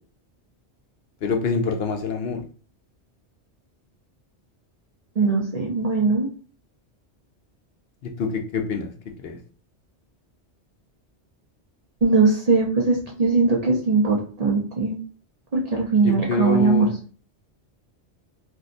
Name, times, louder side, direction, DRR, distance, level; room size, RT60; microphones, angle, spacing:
voice 1, 1.2-2.4 8.0-8.9 9.2-9.4 16.0-16.9, left 5 dB, 65° left, 3 dB, 0.7 m, -25 dB
voice 2, 5.2-6.3 12.0-15.0 15.5-17.0, right 4 dB, 45° right, -2 dB, 0.6 m, -20 dB
2.6 x 2.2 x 3.7 m, 0.40 s
omnidirectional pair, 1.2 m